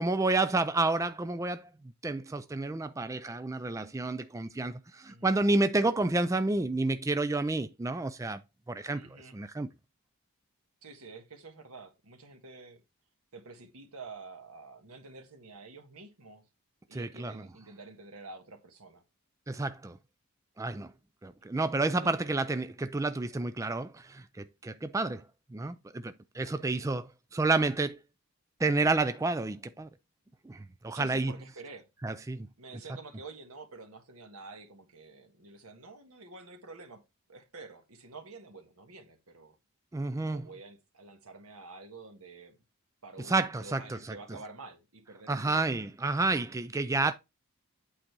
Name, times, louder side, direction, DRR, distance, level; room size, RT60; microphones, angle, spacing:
voice 1, 0.0-1.7 2.0-8.4 8.7-9.0 9.3-9.7 16.9-17.3 19.5-20.0 20.6-20.9 21.2-25.2 25.5-28.0 28.6-29.9 30.5-31.3 32.0-32.5 39.9-40.5 43.3-44.0 45.3-47.1, right 2 dB, 15° right, 0.3 m, -30 dB
voice 2, 8.9-9.4 10.8-12.8 13.3-16.4 16.9-19.0 22.0-22.1 30.9-31.9 32.6-37.0 37.3-39.6 40.2-42.6 43.0-45.6, right 3 dB, 85° right, 1.5 m, -48 dB
8.6 x 3.9 x 4.6 m
head